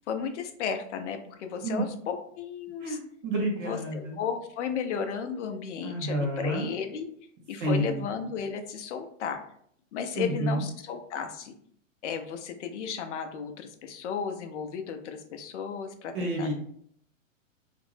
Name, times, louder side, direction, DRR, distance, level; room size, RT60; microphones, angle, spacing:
voice 1, 0.0-3.0 3.6-7.1 7.5-9.4 9.9-11.5 12.0-16.5, left 6 dB, 60° left, 6 dB, 0.6 m, -34 dB
voice 2, 2.8-4.2 5.8-6.7 7.6-8.0 10.1-10.6 16.1-16.5, right 1 dB, 40° right, -1 dB, 0.8 m, -29 dB
2.5 x 2.0 x 3.1 m, 0.64 s
hypercardioid pair, 140°, 40 cm